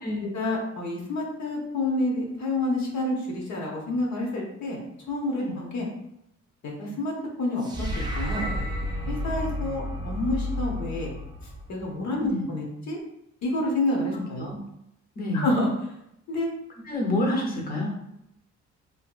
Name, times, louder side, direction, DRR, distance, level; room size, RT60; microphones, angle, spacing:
voice 1, 0.3-4.8 5.1-5.9 6.6-7.1 7.4-8.5 9.1-11.1 11.7-13.0 13.4-14.5 15.3-15.7 16.3-16.5, left 2 dB, 65° left, -2 dB, 0.8 m, -28 dB
sound 1, 7.6-12.0, left 1 dB, 15° right, 0.5 m, -31 dB
voice 2, 14.1-14.6 15.2-15.5 16.8-17.9, left 1 dB, 30° left, -1 dB, 0.8 m, -28 dB
2.7 x 2.6 x 2.3 m, 0.81 s
cardioid pair, 90°, 30 cm